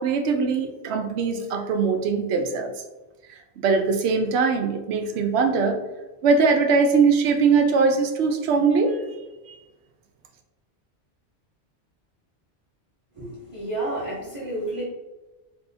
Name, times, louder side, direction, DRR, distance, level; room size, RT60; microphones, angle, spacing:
voice 1, 0.0-2.7 3.6-5.8 6.2-9.0, right 4 dB, 70° right, 5 dB, 0.8 m, -21 dB
voice 2, 13.1-14.8, right 1 dB, 30° right, -8 dB, 1.0 m, -30 dB
3.8 x 2.7 x 2.7 m, 1.1 s
omnidirectional pair, 1.2 m